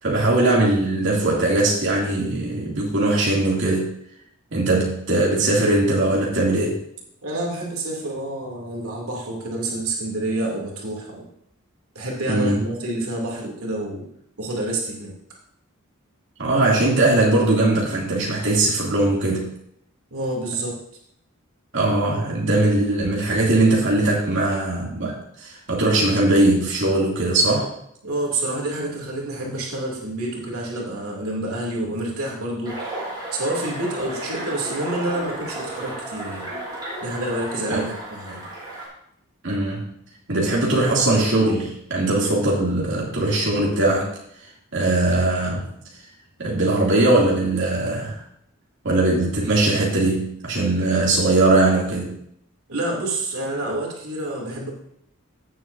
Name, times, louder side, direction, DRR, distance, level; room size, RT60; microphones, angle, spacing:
voice 1, 0.0-3.9 4.5-6.8 12.3-12.6 16.4-19.5 21.7-27.7 37.7-37.9 39.4-39.9 40.3-44.1 44.7-45.7 46.4-48.2 48.8-52.2, right 2 dB, 60° right, -4 dB, 2.5 m, -20 dB
voice 2, 7.2-11.3 11.9-14.1 14.4-15.1 20.1-20.8 28.0-32.9 33.3-36.5 37.0-38.5 52.7-54.7, right 1 dB, 85° right, -2 dB, 2.7 m, -28 dB
sound 1, 32.6-38.9, right 1 dB, 20° right, 4.4 m, -33 dB
17.0 x 7.5 x 2.7 m, 0.72 s
head